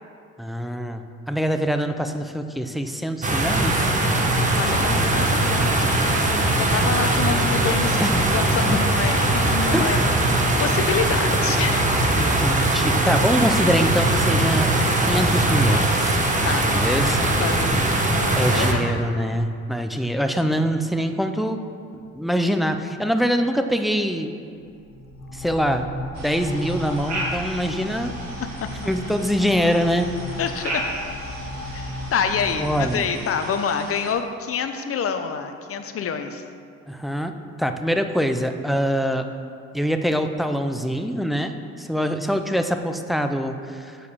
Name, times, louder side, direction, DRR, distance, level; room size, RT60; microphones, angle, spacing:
voice 1, 0.4-3.9 8.0-8.3 8.7-8.8 9.7-10.0 12.2-14.7 15.0-16.2 16.7-17.2 18.4-21.6 21.9-24.3 25.3-25.9 26.2-28.1 28.9-30.1 32.6-33.0 36.9-39.3 39.7-44.0, equal, ahead, 6 dB, 0.5 m, -24 dB
sound 1, 3.2-18.7, right 1 dB, 25° right, 1.1 m, -20 dB
voice 2, 4.5-10.0 10.3-12.3 16.4-19.1 28.6-28.7 30.4-30.8 31.7-36.5, left 6 dB, 50° left, 8 dB, 0.7 m, -28 dB
sound 2, 24.6-33.0, left 1 dB, 75° left, 1.5 m, -35 dB
sound 3, 26.1-34.1, right 1 dB, 65° right, 1.8 m, -35 dB
7.1 x 5.0 x 6.8 m, 2.3 s
cardioid pair, 90°, 30 cm